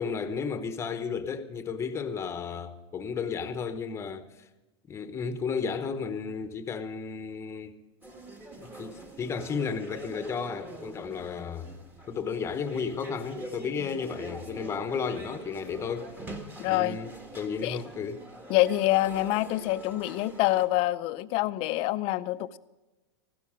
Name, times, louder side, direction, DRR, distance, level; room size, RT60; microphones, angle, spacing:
voice 1, 0.0-4.5 4.9-7.8 8.6-11.8 12.1-16.1 16.7-18.2, left 5 dB, 20° left, 1.0 m, -33 dB
sound 1, 8.0-20.7, right 1 dB, 15° right, 1.8 m, -44 dB
voice 2, 16.6-17.0 17.6-17.8 18.5-22.6, left 16 dB, 40° left, 0.6 m, -26 dB
15.5 x 12.5 x 5.0 m
supercardioid pair, 135°, 14 cm